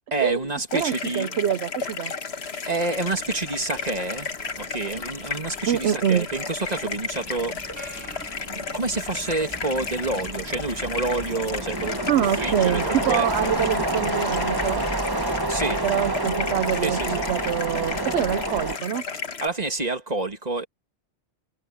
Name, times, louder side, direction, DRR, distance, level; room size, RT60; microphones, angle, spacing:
voice 1, 0.1-1.3 2.6-7.9 8.4-13.5 15.5-15.8 16.8-17.3 19.4-20.7, right 2 dB, 35° right, 2.3 m, -28 dB
sound 1, 0.7-19.5, left 5 dB, 60° left, 1.7 m, -33 dB
voice 2, 0.7-2.1 5.7-6.3 12.1-14.8 15.8-19.0, right 10 dB, 70° right, 0.9 m, -25 dB
sound 2, 3.8-4.0 4.4-18.8, right 1 dB, 20° right, 1.6 m, -29 dB
Gong, 7.8-9.8, right 2 dB, 55° right, 3.5 m, -46 dB
omnidirectional pair, 1.2 m